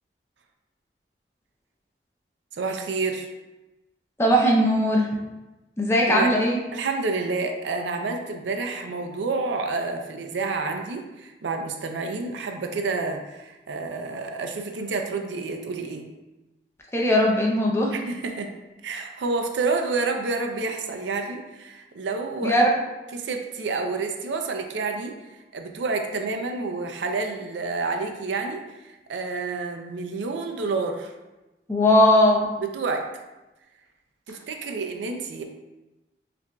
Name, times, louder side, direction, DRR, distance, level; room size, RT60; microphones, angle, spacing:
voice 1, 2.5-3.3 6.1-6.3 6.7-16.1 17.9-18.5 18.8-22.7 23.1-25.2 25.5-31.1 32.6-33.1 34.3-35.4, right 3 dB, 90° right, 4 dB, 0.5 m, -29 dB
voice 2, 4.2-5.1 5.8-6.6 16.9-17.9 22.4-22.7 31.7-32.4, equal, 15° left, -2 dB, 0.5 m, -19 dB
5.7 x 2.5 x 2.2 m, 1.1 s
head